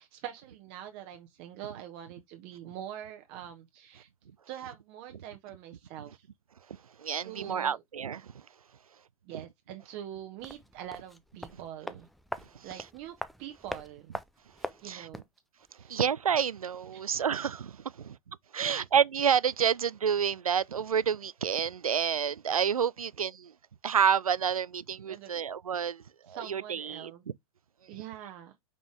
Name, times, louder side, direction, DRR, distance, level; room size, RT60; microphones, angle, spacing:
voice 1, 0.0-4.1 4.5-6.3 7.2-7.8 9.2-12.1 12.6-14.1 14.8-15.2 15.8-16.0 16.9-17.0 18.6-18.8 25.1-25.4 26.3-27.2 27.9-28.5, right 11 dB, 35° right, 1.1 m, -44 dB
voice 2, 7.0-8.3 12.5-12.7 14.8-15.1 15.9-23.5 23.8-27.1 27.9-28.0, right 7 dB, 75° right, 0.4 m, -29 dB
sound 1, 10.4-15.4 15.6-15.7, equal, ahead, 0.4 m, -42 dB
5.5 x 5.2 x 3.3 m
figure-of-eight pair, 100°, 18 cm